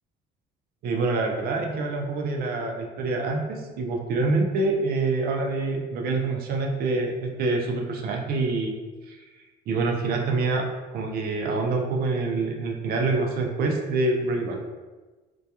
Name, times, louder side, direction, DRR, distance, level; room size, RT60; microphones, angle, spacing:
voice 1, 0.8-8.8 9.1-9.2 9.7-14.6, right 3 dB, 65° right, 1 dB, 0.5 m, -26 dB
2.3 x 2.2 x 2.8 m, 1.2 s
cardioid pair, 110°, 17 cm